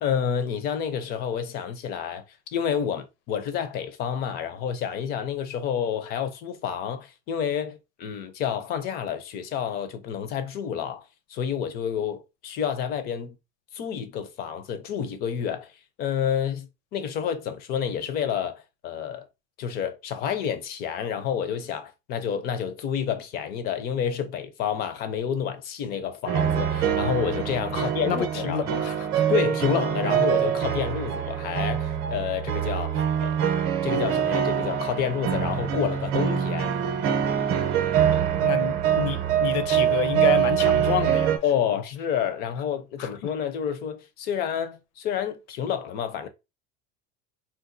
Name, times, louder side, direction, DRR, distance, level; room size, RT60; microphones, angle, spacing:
voice 1, 0.0-2.2 2.5-11.0 11.3-13.4 13.7-19.3 19.6-28.7 29.3-33.4 33.8-36.7 41.4-46.3, left 8 dB, 30° left, 0.4 m, -29 dB
sound 1, 26.3-41.4, right 9 dB, 40° right, 0.6 m, -24 dB
voice 2, 27.7-29.2 37.9-41.3 43.0-43.1, left 7 dB, 80° left, 0.8 m, -29 dB
3.7 x 2.3 x 2.5 m
supercardioid pair, 155°, 35 cm